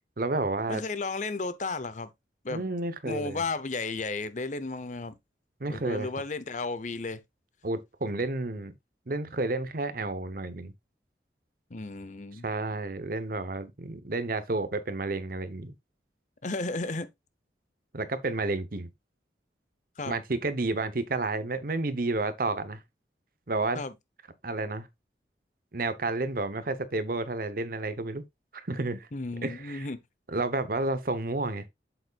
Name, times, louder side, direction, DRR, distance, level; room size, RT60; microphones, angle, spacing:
voice 1, 0.2-0.8 2.5-3.4 5.6-6.1 7.6-8.7 9.1-10.7 12.4-15.7 17.9-18.9 20.1-22.8 23.5-23.8 24.4-24.9 25.7-28.2 28.5-29.1 29.4-29.9 30.3-31.7, right 2 dB, 50° right, 0.9 m, -31 dB
voice 2, 0.7-2.1 2.4-2.6 3.0-5.1 5.7-7.2 11.7-12.5 16.4-17.1 20.0-20.2 23.7-23.9 29.1-30.0, left 3 dB, 45° left, 0.8 m, -33 dB
8.0 x 7.9 x 2.4 m
head